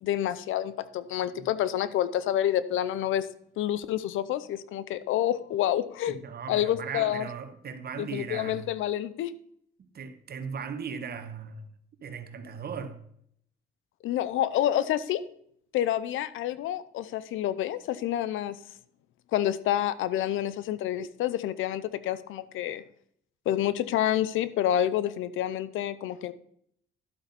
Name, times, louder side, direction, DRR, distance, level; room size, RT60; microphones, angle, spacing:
voice 1, 0.0-3.3 3.6-6.2 6.5-7.3 8.0-9.3 14.0-15.2 15.7-18.6 19.3-22.8 23.5-26.3, left 11 dB, 85° left, 0.7 m, -28 dB
voice 2, 6.1-8.7 9.8-11.7 12.0-13.0, right 6 dB, 55° right, 1.3 m, -38 dB
11.5 x 7.9 x 4.2 m
cardioid pair, 90°, 20 cm